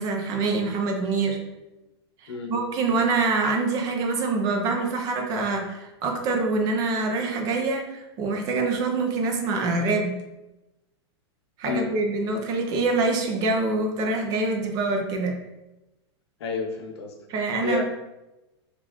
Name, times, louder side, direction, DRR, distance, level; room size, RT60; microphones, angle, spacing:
voice 1, 0.0-1.4 2.2-10.2 11.6-15.3 17.3-17.8, right 3 dB, 25° right, 2 dB, 0.4 m, -25 dB
voice 2, 16.4-17.8, left 4 dB, 70° left, 3 dB, 0.7 m, -30 dB
3.7 x 2.4 x 3.0 m, 1.0 s
supercardioid pair, 160°, 14 cm